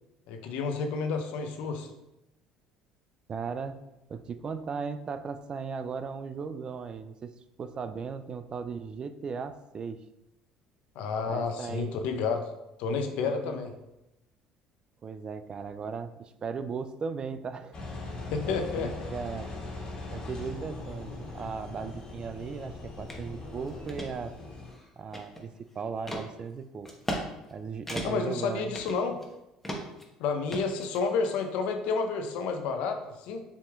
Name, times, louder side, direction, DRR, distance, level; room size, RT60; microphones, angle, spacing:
voice 1, 0.3-1.9 11.0-12.5 12.8-13.7 18.3-18.9 28.0-29.2 30.2-33.4, left 5 dB, 70° left, 5 dB, 0.6 m, -30 dB
voice 2, 3.3-3.8 4.1-7.3 7.6-10.0 11.3-12.0 13.2-13.6 15.0-17.8 18.0-18.2 18.5-19.5 20.1-24.3 25.0-25.5 25.8-26.9 27.5-28.7, right 5 dB, 40° right, 11 dB, 0.3 m, -37 dB
Engine, 17.7-24.7, left 2 dB, 45° left, 1.6 m, -40 dB
sound 1, 23.1-23.2 23.7-24.1 24.6-25.6 26.1-26.3 26.9-27.2 27.5-27.6 27.9-28.3 28.7-29.3 29.6-30.0 30.5-31.3, equal, 10° left, 1.0 m, -36 dB
6.9 x 3.0 x 2.3 m, 0.91 s
hypercardioid pair, 70°, 2 cm